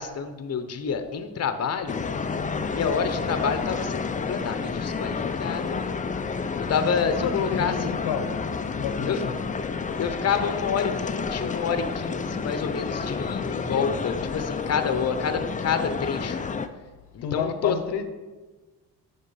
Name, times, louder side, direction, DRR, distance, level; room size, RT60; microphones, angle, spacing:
voice 1, 0.0-2.0 2.7-6.0 6.6-7.7 9.1-9.2 10.0-16.4 17.1-17.7, left 6 dB, 40° left, 0.9 m, -28 dB
sound 1, 1.9-16.7, left 5 dB, 20° left, 0.5 m, -30 dB
voice 2, 7.2-8.4 8.8-9.4 17.2-18.0, left 7 dB, 75° left, 0.9 m, -30 dB
10.5 x 3.8 x 5.7 m
cardioid pair, 80°, 41 cm